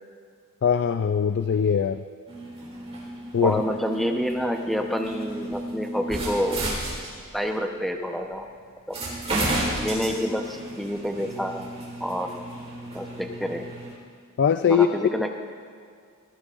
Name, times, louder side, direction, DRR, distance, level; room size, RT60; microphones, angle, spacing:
voice 1, 0.6-2.0 3.3-3.6 14.4-14.9, left 7 dB, 55° left, 10 dB, 0.4 m, -21 dB
sound 1, 2.3-7.5 8.3-8.4 8.9-13.9, right 1 dB, 30° right, 3.8 m, -33 dB
voice 2, 3.4-6.7 7.3-8.5 8.9-9.0 9.8-11.7 12.0-12.3 12.9-13.7 14.7-15.4, equal, ahead, 3 dB, 0.8 m, -28 dB
20.5 x 15.0 x 2.5 m, 2.2 s
head